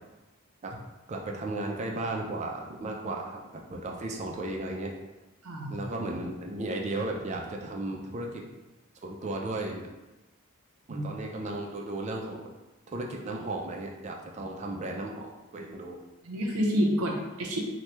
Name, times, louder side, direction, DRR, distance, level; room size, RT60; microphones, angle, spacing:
voice 1, 1.1-4.9 5.7-8.4 9.0-9.9 10.9-12.5 12.9-16.0, right 2 dB, 30° right, 1 dB, 0.3 m, -35 dB
voice 2, 5.4-5.8 10.9-11.0 16.2-17.6, equal, 80° right, 0 dB, 0.6 m, -28 dB
3.0 x 2.2 x 3.2 m, 1.1 s
head